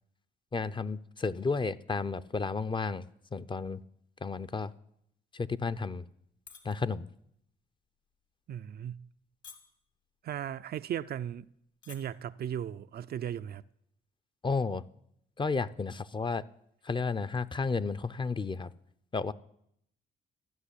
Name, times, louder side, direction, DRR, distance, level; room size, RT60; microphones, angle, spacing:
voice 1, 0.5-3.0 3.3-3.8 4.2-4.7 5.3-6.0 6.6-7.1 14.4-14.8 15.4-16.4 16.9-18.7 19.1-19.3, left 4 dB, 25° left, 0.6 m, -32 dB
sound 1, 6.5-6.7 7.1-7.4 8.0-8.2 8.9-9.2 9.4-9.9 10.7-10.8 11.0-11.1 11.7-12.0 12.3-12.6, left 6 dB, 65° left, 2.5 m, -50 dB
voice 2, 8.5-9.1 10.2-11.5 11.9-13.6, right 9 dB, 55° right, 0.4 m, -37 dB
14.0 x 6.4 x 9.9 m
cardioid pair, 90°, 20 cm